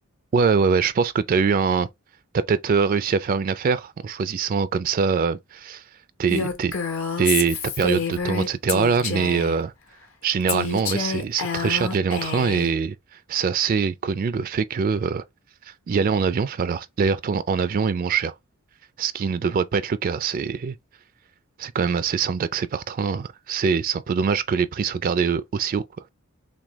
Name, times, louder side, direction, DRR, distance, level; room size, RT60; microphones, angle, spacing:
voice 1, 0.3-1.9 2.3-5.8 6.2-6.7 7.2-9.7 10.2-12.9 13.3-15.2 15.7-18.3 19.0-20.8 21.6-25.8, right 5 dB, 40° right, 0.3 m, -23 dB
Female speech woman speaking, 6.3-9.6 10.5-12.7, left 5 dB, 65° left, 1.0 m, -28 dB
6.0 x 2.2 x 3.0 m
head